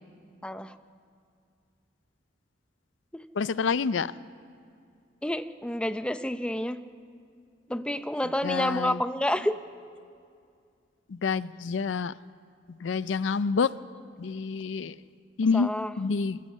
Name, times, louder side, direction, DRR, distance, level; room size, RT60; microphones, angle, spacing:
voice 1, 0.4-0.8 3.1-3.2 5.2-6.8 7.7-9.5 15.5-15.9, left 1 dB, 5° left, 0.5 m, -29 dB
voice 2, 3.3-4.1 8.4-9.0 11.1-12.2 12.7-13.7 14.2-15.0 15.4-15.7 16.0-16.4, left 5 dB, 80° left, 0.5 m, -27 dB
26.0 x 15.0 x 7.3 m
head